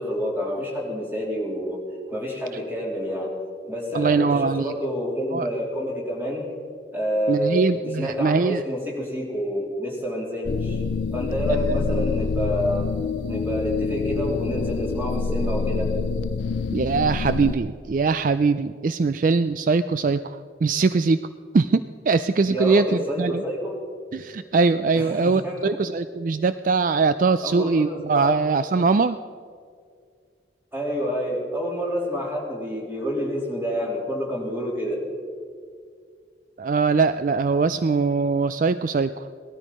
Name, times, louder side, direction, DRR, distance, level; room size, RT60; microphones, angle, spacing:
voice 1, 0.0-1.8 2.1-3.3 3.7-6.5 6.9-10.8 11.1-12.9 13.3-15.9 22.5-23.8 24.9-25.8 27.4-28.4 30.7-35.0, equal, 10° right, -2 dB, 3.2 m, -28 dB
voice 2, 3.9-4.7 5.3-5.5 7.3-8.6 11.7-11.8 16.7-21.2 21.5-23.4 24.1-29.2 36.6-39.3, right 4 dB, 50° right, 12 dB, 0.4 m, -22 dB
sound 1, 10.5-17.6, left 4 dB, 90° left, 0.4 m, -26 dB
18.0 x 13.0 x 5.3 m, 2.1 s
head